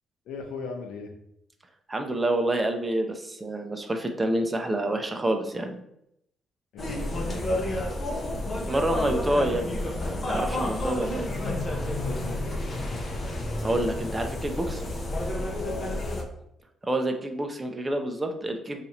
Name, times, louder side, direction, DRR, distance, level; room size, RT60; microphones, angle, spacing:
voice 1, 0.2-1.1 6.7-7.6 12.0-12.7 15.6-16.0, left 4 dB, 85° left, 3 dB, 0.6 m, -39 dB
voice 2, 1.9-5.8 8.5-11.3 13.6-14.8 16.8-18.8, right 1 dB, 20° right, 4 dB, 0.5 m, -28 dB
sound 1, 6.8-16.2, left 1 dB, 35° left, 0.6 m, -30 dB
2.7 x 2.4 x 4.1 m, 0.78 s
cardioid pair, 90°, 0 cm